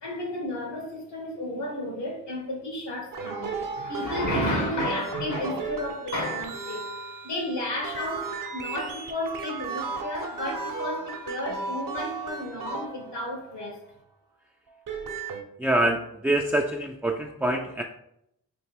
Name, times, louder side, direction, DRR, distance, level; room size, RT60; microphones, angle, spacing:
voice 1, 0.0-6.8 7.2-13.8, left 1 dB, 75° left, 1.4 m, -32 dB
sound 1, 3.1-13.6 14.7-15.4, right 4 dB, 50° right, 0.7 m, -35 dB
voice 2, 15.6-17.8, right 1 dB, 5° right, 0.3 m, -25 dB
3.2 x 2.8 x 4.5 m
supercardioid pair, 45°, 42 cm